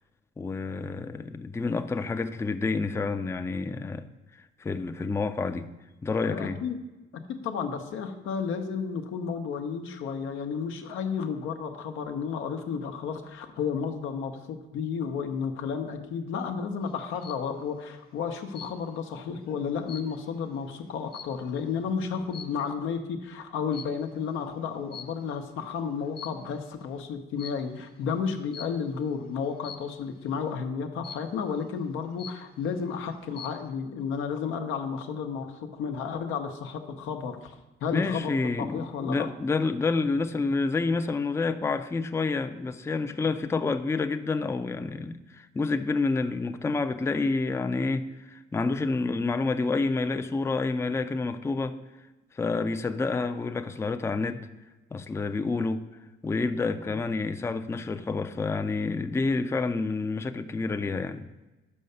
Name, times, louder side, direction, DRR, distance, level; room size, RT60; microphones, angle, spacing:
voice 1, 0.4-4.1 4.6-5.7 6.0-6.6 37.9-51.8 52.3-54.5 54.9-55.9 56.2-61.3, left 3 dB, 15° left, 0.4 m, -28 dB
voice 2, 6.2-6.8 7.4-37.5 37.8-38.3 38.6-39.3 56.9-57.0, left 6 dB, 90° left, 0.8 m, -32 dB
sound 1, 16.9-17.5 18.5-19.1 19.5-21.7 22.3-22.7 23.7-24.1 24.9-25.5 26.0-26.7 27.4-27.8 28.5-28.9 29.6-30.1 31.0-31.5 31.9-32.0 32.2-32.8 33.2-33.7, left 7 dB, 50° left, 1.0 m, -45 dB
5.5 x 5.4 x 6.6 m
cardioid pair, 90°, 20 cm